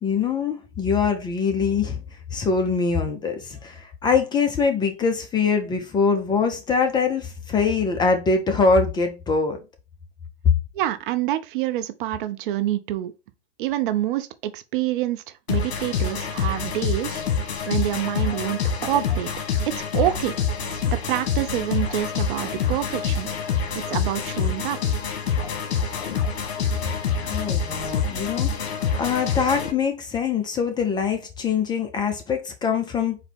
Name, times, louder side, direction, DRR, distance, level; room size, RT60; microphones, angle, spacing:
voice 1, 0.0-2.0 2.3-9.6 27.3-33.2, left 5 dB, 15° left, 0.5 m, -23 dB
voice 2, 10.7-13.1 13.6-19.3 19.7-20.3 20.9-23.3 23.7-25.0, right 13 dB, 55° right, 0.6 m, -27 dB
sound 1, 15.5-29.7, left 6 dB, 75° left, 1.4 m, -26 dB
4.1 x 2.7 x 4.2 m
hypercardioid pair, 130°, 32 cm